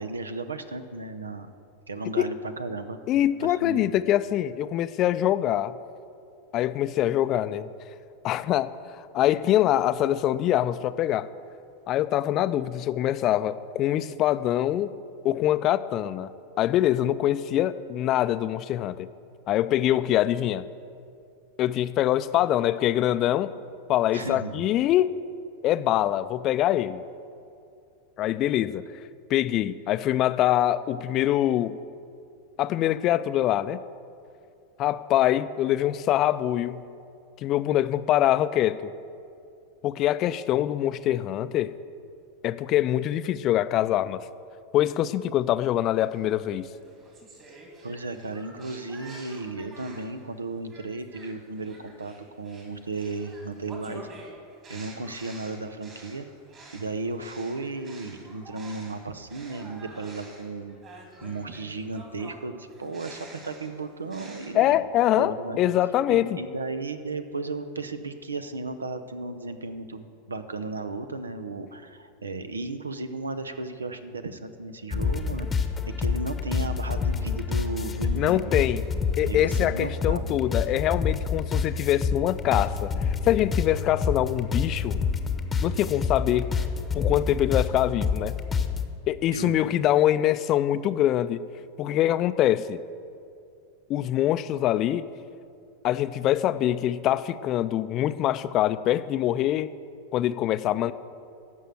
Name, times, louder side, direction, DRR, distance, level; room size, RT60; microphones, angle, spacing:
voice 1, 0.0-1.5 1.9-3.0 3.4-4.0 24.1-24.7 47.8-54.1 54.7-56.3 56.7-60.8 61.2-64.9 65.2-65.6 66.1-78.6 79.3-80.3 89.3-89.7, right 3 dB, 90° right, 11 dB, 0.7 m, -35 dB
voice 2, 3.1-5.8 6.5-7.7 8.2-8.7 9.0-11.3 11.9-14.9 15.2-16.3 16.6-19.1 19.5-20.6 21.6-23.5 23.9-25.1 25.6-27.0 28.2-28.8 29.3-31.8 32.6-33.8 34.8-36.8 37.4-38.9 39.8-41.7 42.4-44.2 44.7-46.7 64.5-66.4 78.1-78.8 79.2-82.9 83.2-85.0 85.6-86.5 86.9-88.3 89.1-91.4 91.8-92.8 93.9-95.1 95.8-99.7 100.1-100.9, left 12 dB, 40° left, 14 dB, 0.4 m, -24 dB
sound 1, 46.1-50.2 50.7-59.0 59.3-64.5, right 2 dB, 35° right, 3.0 m, -48 dB
sound 2, 74.9-88.9, left 5 dB, 20° left, 0.9 m, -28 dB
14.5 x 5.5 x 7.7 m, 2.5 s
hypercardioid pair, 90°, 0 cm